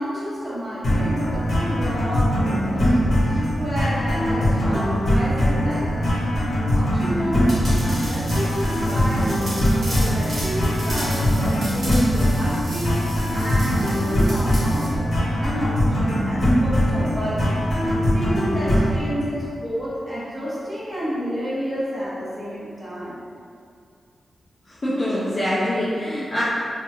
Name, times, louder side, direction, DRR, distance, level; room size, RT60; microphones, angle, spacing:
voice 1, 0.0-6.3 6.7-7.5 7.8-13.0 13.3-17.6 18.1-23.2, equal, 15° right, -9 dB, 0.7 m, -30 dB
sound 1, 0.8-19.0, equal, 60° left, 0.8 m, -21 dB
sound 2, 7.5-14.9, equal, 60° right, 1.1 m, -35 dB
voice 2, 24.7-26.4, left 1 dB, 30° left, -10 dB, 0.4 m, -24 dB
2.8 x 2.4 x 2.4 m, 2.4 s
wide cardioid pair, 165°, 0 cm